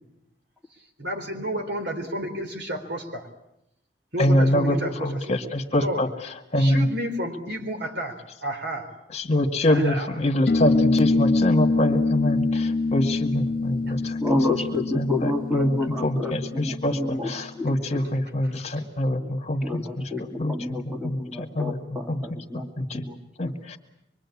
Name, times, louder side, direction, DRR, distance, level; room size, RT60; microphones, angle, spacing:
voice 1, 1.0-3.3 4.1-5.3 5.7-6.0 6.6-8.9 9.7-10.0, equal, 65° right, 4 dB, 4.1 m, -31 dB
voice 2, 4.2-6.9 9.1-14.2 15.0-20.1 20.4-21.8 22.1-22.2 22.5-23.0 23.4-23.8, left 1 dB, 40° left, 4 dB, 2.2 m, -25 dB
sound 1, 10.5-17.4, left 3 dB, 55° left, 1.3 m, -25 dB
voice 3, 14.2-18.1 19.6-22.7 22.9-23.6, left 2 dB, 5° right, 2 dB, 2.7 m, -29 dB
25.0 x 23.5 x 8.7 m, 0.82 s
head